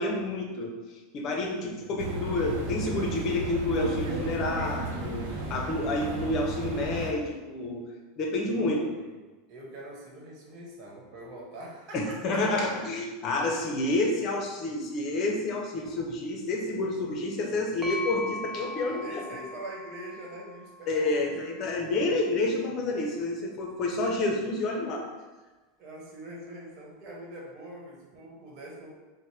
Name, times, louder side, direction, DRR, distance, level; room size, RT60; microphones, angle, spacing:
voice 1, 0.0-7.9 8.2-8.8 11.9-19.2 20.9-25.1, left 2 dB, 45° left, 1 dB, 0.8 m, -29 dB
voice 2, 1.5-2.0 8.5-9.1 9.5-12.9 18.7-22.3 25.8-29.0, right 1 dB, 50° right, -3 dB, 1.2 m, -44 dB
sound 1, 2.0-7.1, right 2 dB, 65° right, 0.7 m, -34 dB
sound 2, 17.8-21.6, left 2 dB, 5° right, 0.5 m, -39 dB
4.2 x 2.2 x 3.2 m, 1.2 s
supercardioid pair, 115°, 0 cm